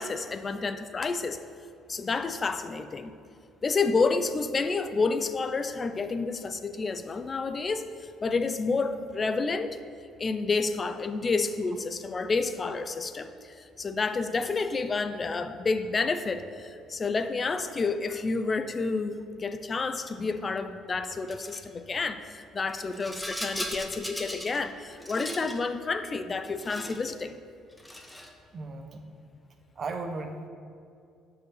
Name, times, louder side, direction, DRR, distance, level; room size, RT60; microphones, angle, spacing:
voice 1, 0.0-1.4 1.9-3.1 3.6-9.8 10.2-27.3, left 4 dB, 30° left, 10 dB, 0.5 m, -29 dB
Rattle, 21.3-21.6 22.7-24.6 24.9-25.6 26.4-27.1 27.7-28.4, equal, 5° left, 0.9 m, -38 dB
voice 2, 28.5-29.0 29.8-30.5, right 3 dB, 40° right, 6 dB, 0.9 m, -36 dB
10.5 x 4.9 x 6.6 m, 2.4 s
cardioid pair, 120°, 0 cm